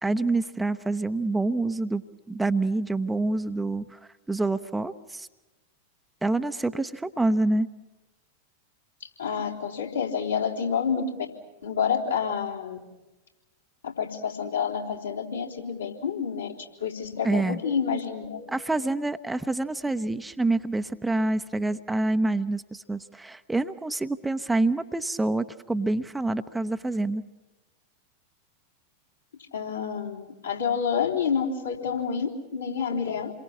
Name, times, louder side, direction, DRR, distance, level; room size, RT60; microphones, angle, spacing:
voice 1, 0.0-2.0 2.3-4.0 4.3-5.3 6.2-7.7 17.2-17.6 18.5-27.2, right 2 dB, 5° right, 9 dB, 0.8 m, -27 dB
voice 2, 9.0-11.3 11.6-12.8 13.8-16.5 16.8-18.5 29.5-33.3, left 6 dB, 70° left, -2 dB, 3.6 m, -28 dB
28.0 x 23.0 x 7.3 m, 1.1 s
figure-of-eight pair, 90°, 0 cm